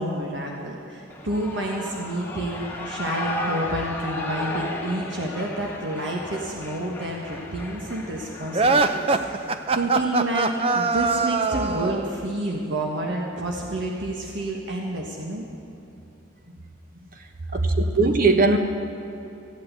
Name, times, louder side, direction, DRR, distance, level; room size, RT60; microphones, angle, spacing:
voice 1, 0.0-15.4 17.4-17.7, right 1 dB, 70° right, -1 dB, 1.4 m, -29 dB
Shout / Cheering, 1.1-8.8, left 1 dB, 10° left, 1.3 m, -34 dB
sound 1, 8.5-12.1, right 3 dB, 30° right, 0.5 m, -22 dB
voice 2, 17.5-18.6, right 3 dB, 45° right, 5 dB, 1.1 m, -20 dB
15.0 x 8.6 x 8.1 m, 3.0 s
head